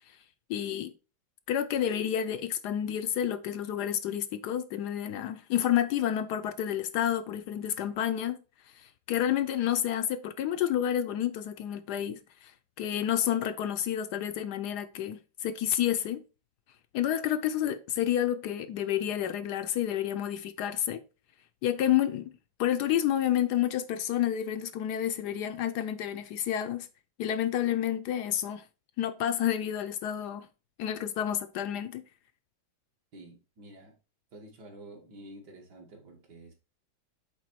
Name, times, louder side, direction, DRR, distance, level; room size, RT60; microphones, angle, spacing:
voice 1, 0.5-0.9 1.5-8.4 8.8-12.5 12.8-16.2 16.9-21.0 21.6-22.3 22.6-26.9 27.2-28.6 29.0-30.5 30.8-32.0, left 10 dB, 70° left, 1.0 m, -29 dB
voice 2, 33.1-34.0 34.3-36.5, right 1 dB, 65° right, 2.1 m, -49 dB
8.2 x 3.7 x 4.5 m
omnidirectional pair, 2.0 m